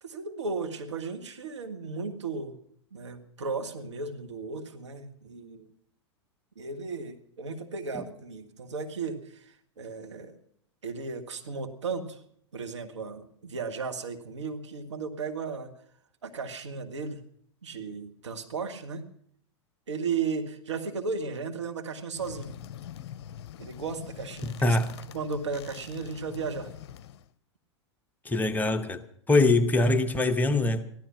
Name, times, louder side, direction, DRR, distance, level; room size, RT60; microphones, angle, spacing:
voice 1, 0.0-2.6 2.9-5.7 6.5-10.3 10.8-12.2 12.5-15.7 16.2-17.2 17.6-19.0 19.9-22.6 23.6-24.8 25.1-26.7, right 4 dB, 75° right, 1.7 m, -35 dB
sound 1, 22.2-27.3, left 10 dB, 60° left, 0.6 m, -44 dB
voice 2, 24.6-25.0 28.2-30.8, left 2 dB, 10° left, 1.0 m, -23 dB
15.0 x 12.0 x 6.1 m
figure-of-eight pair, 95°, 15 cm